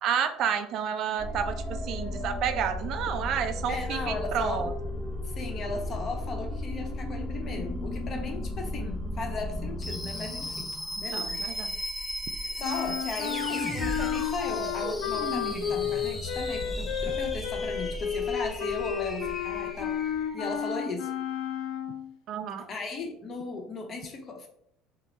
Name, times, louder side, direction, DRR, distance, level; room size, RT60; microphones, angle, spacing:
voice 1, 0.0-4.7 11.1-11.8 22.3-22.7, right 8 dB, 60° right, 9 dB, 0.4 m, -30 dB
sound 1, 1.2-20.5, left 1 dB, 10° left, 0.7 m, -35 dB
voice 2, 3.7-4.7 5.2-10.7 11.0-11.4 12.5-21.1 22.7-24.5, left 3 dB, 40° left, 3 dB, 0.8 m, -37 dB
sound 2, 12.6-22.1, left 9 dB, 70° left, 0.4 m, -32 dB
3.2 x 2.1 x 3.9 m, 0.70 s
supercardioid pair, 95°, 0 cm